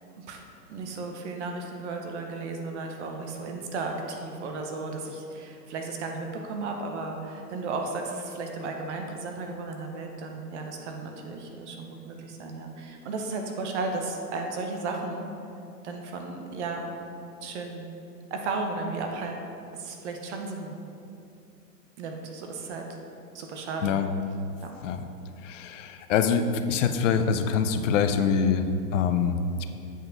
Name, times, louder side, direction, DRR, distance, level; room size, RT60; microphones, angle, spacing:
voice 1, 0.7-15.2 15.8-16.9 17.4-17.9 18.3-19.5 19.7-20.7 22.0-22.8 23.3-23.9 24.6-24.7, right 3 dB, 45° right, 3 dB, 0.8 m, -34 dB
voice 2, 25.4-29.7, left 6 dB, 50° left, 8 dB, 0.5 m, -25 dB
8.0 x 4.3 x 3.9 m, 2.6 s
hypercardioid pair, 140°, 49 cm